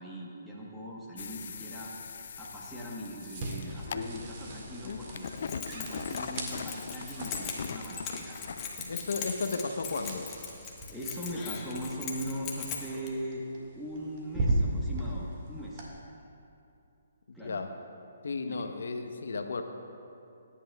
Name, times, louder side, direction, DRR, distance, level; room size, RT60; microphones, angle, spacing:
voice 1, 0.0-1.9 2.4-5.3 5.7-8.9 10.9-13.5 13.8-15.9 17.3-17.6 18.5-18.6, equal, ahead, -7 dB, 1.2 m, -40 dB
sound 1, 1.2-8.8, left 6 dB, 60° left, 0.4 m, -41 dB
sound 2, 2.3-15.9, right 2 dB, 40° right, 1.9 m, -38 dB
Keys jangling, 5.2-13.1, left 6 dB, 25° left, 1.3 m, -40 dB
voice 2, 8.9-10.3 17.3-17.8 18.2-19.6, left 4 dB, 75° left, 6 dB, 0.9 m, -34 dB
19.5 x 10.0 x 2.3 m, 2.7 s
hypercardioid pair, 150°, 0 cm